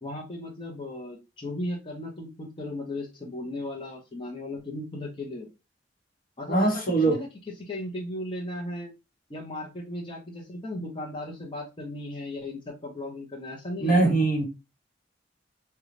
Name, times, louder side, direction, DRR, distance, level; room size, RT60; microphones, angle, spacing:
voice 1, 0.0-5.5 6.4-7.3 7.6-8.9 9.3-14.1, left 1 dB, 25° left, 0.7 m, -36 dB
voice 2, 6.5-7.2 13.8-14.4, right 2 dB, 50° left, 1.1 m, -22 dB
3.8 x 2.3 x 3.1 m
head